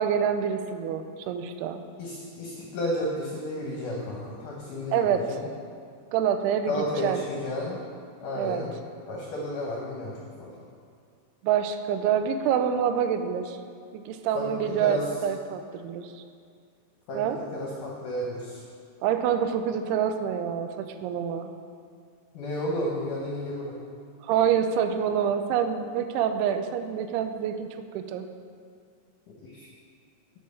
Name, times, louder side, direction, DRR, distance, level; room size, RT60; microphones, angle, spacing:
voice 1, 0.0-1.8 4.9-5.4 6.1-7.2 8.3-8.6 11.4-13.6 13.9-16.1 17.1-17.4 19.0-21.5 24.2-27.7 27.9-28.3, right 8 dB, 80° right, 8 dB, 2.5 m, -26 dB
voice 2, 2.0-5.4 6.7-7.8 8.2-8.7 9.1-10.5 14.4-15.0 17.1-18.6 22.3-23.7 29.4-29.7, left 1 dB, 70° left, -3 dB, 2.0 m, -32 dB
8.9 x 5.5 x 6.6 m, 2.3 s
omnidirectional pair, 4.9 m